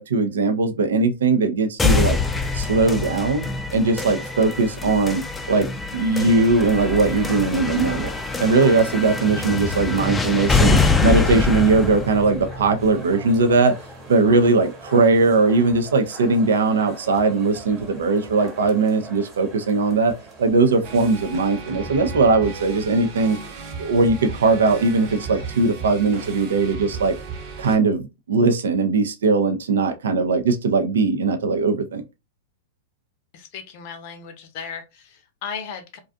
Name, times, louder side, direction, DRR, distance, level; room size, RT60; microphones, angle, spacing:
voice 1, 0.0-2.2 2.5-3.5 3.7-8.1 8.4-13.8 14.1-23.4 23.8-27.1 27.6-32.0, right 3 dB, 80° right, 0.4 m, -19 dB
sound 1, 1.8-13.7, left 4 dB, 10° left, 0.3 m, -24 dB
sound 2, 6.5-21.1, right 3 dB, 25° right, 1.1 m, -41 dB
sound 3, 20.8-27.8, right 4 dB, 50° right, 0.9 m, -35 dB
voice 2, 33.3-36.0, left 6 dB, 55° left, 0.6 m, -36 dB
2.5 x 2.3 x 2.4 m
hypercardioid pair, 110°, 0 cm